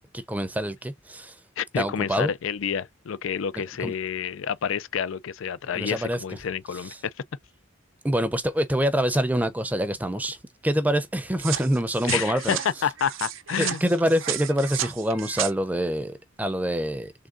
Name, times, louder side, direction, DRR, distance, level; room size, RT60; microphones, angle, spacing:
voice 1, 0.1-1.3 1.8-2.3 3.8-3.9 5.7-6.2 8.0-10.4 10.6-12.6 13.6-17.1, equal, 10° right, 0.6 m, -25 dB
voice 2, 1.6-7.1 12.1-13.8, left 7 dB, 90° left, 0.4 m, -29 dB
sound 1, 11.4-15.5, right 11 dB, 90° right, 0.7 m, -33 dB
3.7 x 3.5 x 2.4 m
head